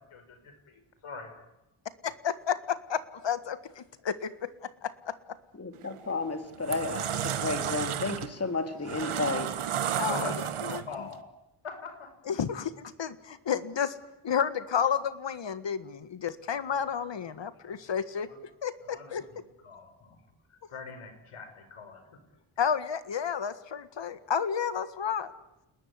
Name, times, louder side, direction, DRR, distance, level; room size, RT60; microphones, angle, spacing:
voice 1, 0.0-1.3 9.0-9.4 10.0-11.2 11.6-12.1 17.5-17.8 18.3-18.4 18.9-19.2 19.6-20.2 20.5-22.0, left 4 dB, 85° left, 5.5 m, -43 dB
voice 2, 2.0-5.2 10.0-10.3 10.6-11.1 12.3-14.0 14.2-18.3 18.6-19.3 22.6-25.3, left 7 dB, 60° left, 1.8 m, -31 dB
voice 3, 5.6-9.5, left 4 dB, 30° left, 2.7 m, -32 dB
sound 1, 5.7-6.0 6.5-11.1, right 9 dB, 85° right, 1.5 m, -32 dB
29.5 x 20.0 x 9.7 m
wide cardioid pair, 100°, 49 cm